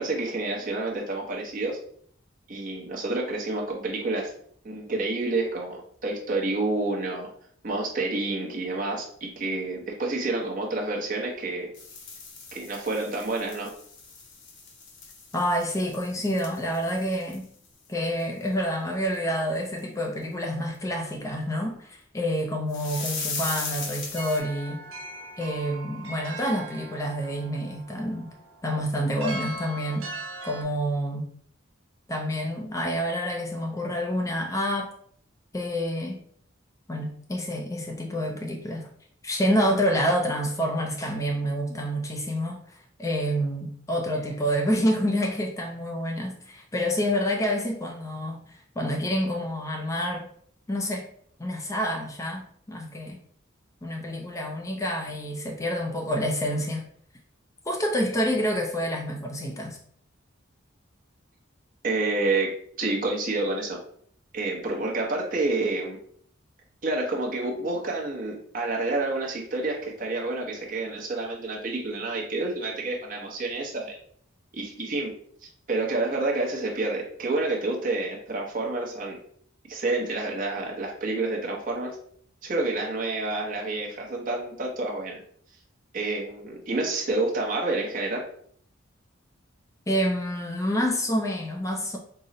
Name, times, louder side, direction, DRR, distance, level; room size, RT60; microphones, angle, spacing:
voice 1, 0.0-1.8 2.5-4.3 4.6-7.3 7.6-11.7 12.5-13.7 61.8-62.5 62.8-63.8 64.3-66.0 66.8-74.0 74.5-75.1 75.4-79.2 79.7-81.9 82.4-85.2 85.9-88.2, right 2 dB, 45° right, -1 dB, 0.8 m, -29 dB
sound 1, 11.7-17.7 18.0-18.2 18.5-18.6 19.1-19.2 19.8-19.9 22.7-24.4, left 4 dB, 65° left, 1.0 m, -38 dB
voice 2, 15.3-17.5 17.9-24.8 25.4-28.3 28.6-30.1 30.4-31.3 32.1-34.9 35.5-36.2 36.9-38.9 39.2-50.3 50.7-51.1 51.4-53.2 53.8-56.8 57.7-59.8 89.9-92.0, equal, 15° left, 1 dB, 0.4 m, -28 dB
sound 2, 24.2-30.6, right 2 dB, 90° right, 0.6 m, -40 dB
3.8 x 2.0 x 3.8 m, 0.62 s
head